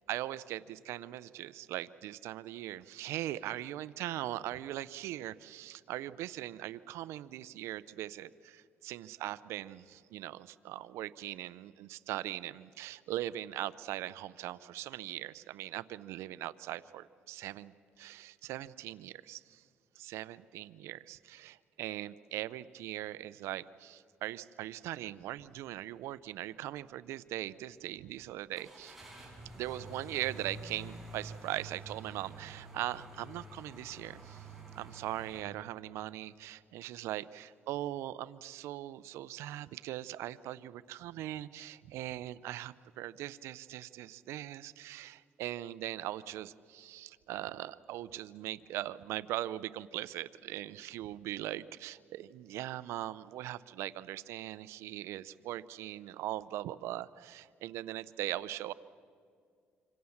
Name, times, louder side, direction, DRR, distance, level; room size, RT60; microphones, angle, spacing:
voice 1, 0.1-19.6 20.0-29.0 29.5-34.5 34.8-58.7, right 14 dB, 85° right, 16 dB, 0.6 m, -40 dB
sound 1, 25.4-25.5 26.0-26.1 28.5-35.4, right 2 dB, 5° right, 7.8 m, -49 dB
26.5 x 25.5 x 7.2 m, 2.2 s
cardioid pair, 85°, 4 cm